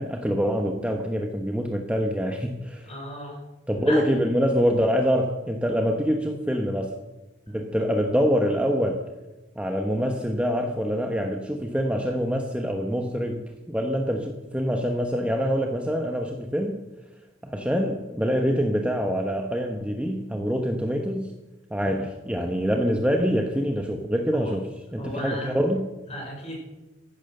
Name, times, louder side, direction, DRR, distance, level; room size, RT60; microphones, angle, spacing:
voice 1, 0.0-2.9 3.7-6.9 7.5-9.0 9.6-13.4 13.7-16.8 17.4-21.3 21.7-25.9, equal, 5° right, 3 dB, 1.1 m, -25 dB
voice 2, 2.8-3.4 3.8-4.0 21.8-22.0 24.3-24.5 25.0-25.6 26.1-26.6, equal, 35° left, -1 dB, 5.9 m, -35 dB
15.0 x 12.0 x 6.6 m, 1.1 s
head